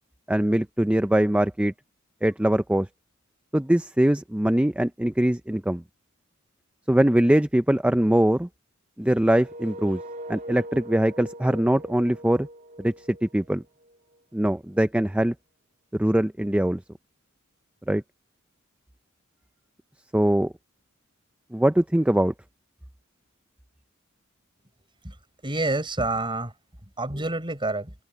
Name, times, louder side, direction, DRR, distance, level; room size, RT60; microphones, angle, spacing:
voice 1, 0.3-1.7 2.2-2.9 3.5-5.8 6.9-8.5 9.0-10.0 10.3-12.5 12.8-13.6 14.3-15.3 15.9-16.8 17.9-18.0 20.1-20.5 21.5-22.3, right 1 dB, 5° right, 0.5 m, -22 dB
sound 1, 9.4-14.2, right 1 dB, 40° right, 3.3 m, -41 dB
voice 2, 25.4-26.5 27.0-27.9, right 2 dB, 25° right, 5.4 m, -28 dB
head